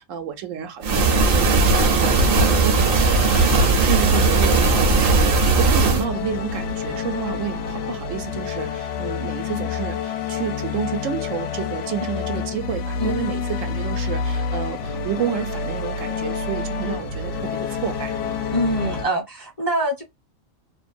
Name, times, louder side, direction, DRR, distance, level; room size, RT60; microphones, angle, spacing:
voice 1, 0.0-18.1, right 10 dB, 90° right, 1.0 m, -30 dB
sound 1, 0.8-6.0, right 4 dB, 60° right, 0.7 m, -18 dB
sound 2, 1.6-19.1, left 4 dB, 70° left, 0.9 m, -27 dB
voice 2, 18.5-20.0, right 1 dB, 25° left, 0.5 m, -24 dB
2.5 x 2.2 x 2.5 m
omnidirectional pair, 1.3 m